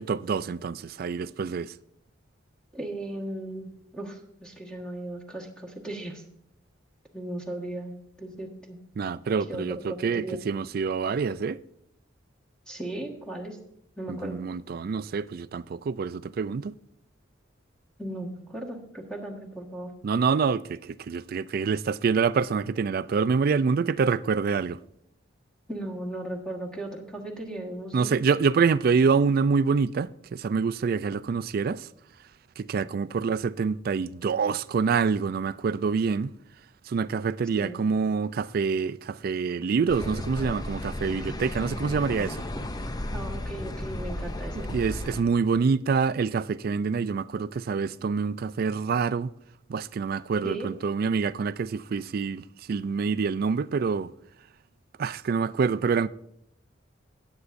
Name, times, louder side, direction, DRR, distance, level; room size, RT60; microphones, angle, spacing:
voice 1, 0.0-1.7 9.0-11.6 14.1-16.7 20.0-24.8 27.9-31.9 32.6-36.3 36.9-42.4 44.6-49.3 49.7-54.1 55.0-56.1, right 5 dB, 50° right, 0.3 m, -26 dB
voice 2, 2.7-6.2 7.1-8.8 9.5-10.4 12.7-13.6 14.0-14.4 18.0-19.9 25.7-28.2 37.5-37.9 43.1-44.7 50.4-50.7, right 1 dB, 5° left, 1.5 m, -36 dB
sound 1, 39.9-45.2, left 1 dB, 20° left, 0.5 m, -34 dB
18.0 x 8.1 x 2.6 m
head